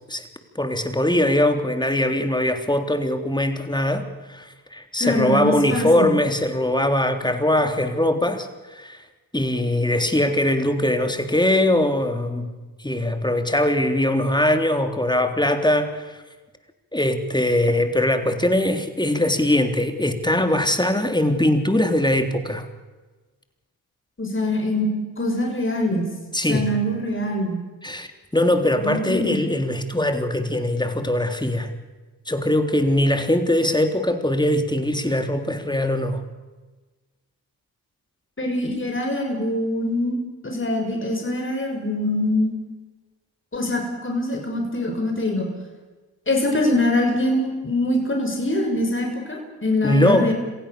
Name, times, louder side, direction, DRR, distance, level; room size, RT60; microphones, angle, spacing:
voice 1, 0.6-9.0 9.3-12.5 12.8-16.2 16.9-22.7 26.3-26.7 27.8-31.7 32.3-36.2 49.8-50.3, left 1 dB, 10° left, 7 dB, 3.5 m, -21 dB
voice 2, 5.0-6.1 24.2-24.9 25.2-26.1 26.5-27.6 28.8-29.4 38.4-40.2 40.4-42.5 43.5-45.5 46.3-50.3, left 1 dB, 30° left, 2 dB, 6.7 m, -23 dB
27.0 x 16.5 x 7.0 m, 1.3 s
supercardioid pair, 55°, 42 cm